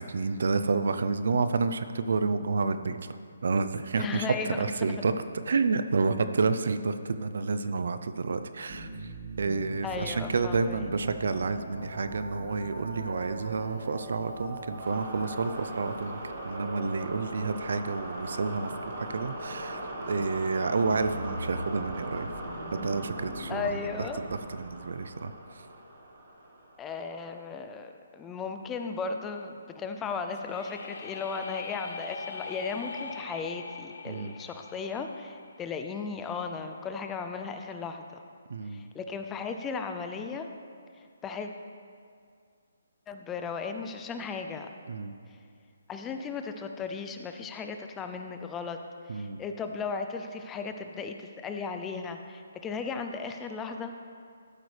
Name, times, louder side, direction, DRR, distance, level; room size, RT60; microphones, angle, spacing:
voice 1, 0.0-3.0 3.4-4.3 4.6-5.1 5.5-8.9 9.4-16.2 16.4-22.3 22.7-23.8 24.5-25.3 34.1-34.3 38.5-38.8 44.9-45.1 49.1-49.4, right 4 dB, 65° right, 11 dB, 0.5 m, -29 dB
voice 2, 4.0-5.0 9.8-10.9 23.5-24.2 26.8-38.2 38.7-40.5 41.2-41.5 43.1-44.7 45.9-48.8 49.1-53.9, left 5 dB, 10° left, 6 dB, 0.4 m, -36 dB
sound 1, 8.7-27.2, right 1 dB, 35° right, 1.5 m, -39 dB
sound 2, 30.3-36.2, left 4 dB, 55° left, 0.6 m, -42 dB
12.5 x 8.2 x 3.3 m, 2.3 s
hypercardioid pair, 165°, 0 cm